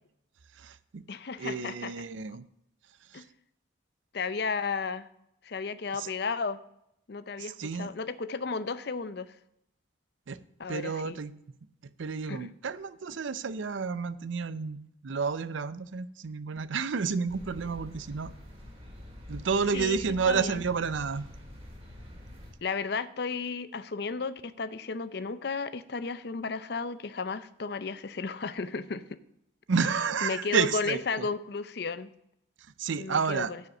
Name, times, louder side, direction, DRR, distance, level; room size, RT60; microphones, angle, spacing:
voice 1, 0.6-1.0 1.4-2.4 3.1-3.2 5.9-6.1 7.4-7.9 10.3-10.4 10.7-11.3 12.0-18.3 19.3-21.2 29.7-31.0 32.8-33.5, right 5 dB, 75° right, 15 dB, 0.5 m, -30 dB
voice 2, 1.1-2.1 3.1-3.2 4.1-5.1 5.4-6.6 7.1-9.4 10.6-11.2 12.3-12.5 19.7-20.6 22.6-29.2 30.2-32.1 33.0-33.6, left 4 dB, 55° left, 14 dB, 0.5 m, -34 dB
sound 1, 17.3-22.5, left 1 dB, 30° right, 2.7 m, -46 dB
9.3 x 5.5 x 7.1 m, 0.78 s
head